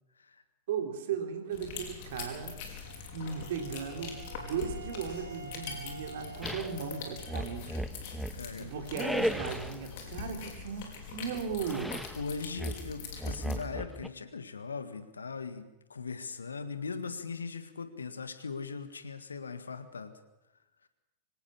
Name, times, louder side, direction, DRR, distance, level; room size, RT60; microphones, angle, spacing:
voice 1, 0.7-2.6 3.1-7.9 8.6-11.9, right 6 dB, 55° right, 4 dB, 3.7 m, -37 dB
sound 1, 1.5-13.5, left 6 dB, 50° left, 5.0 m, -43 dB
Wind instrument woodwind instrument, 2.9-7.6, right 6 dB, 75° right, 5.0 m, -49 dB
sound 2, 6.4-6.8 7.3-8.5 8.9-9.8 11.7-12.2 12.6-14.1, equal, ahead, 0.9 m, -35 dB
voice 2, 8.3-8.7 12.2-20.2 20.8-20.9, left 5 dB, 75° left, 10 dB, 1.8 m, -40 dB
24.5 x 18.0 x 7.1 m, 0.94 s
figure-of-eight pair, 90°, 0 cm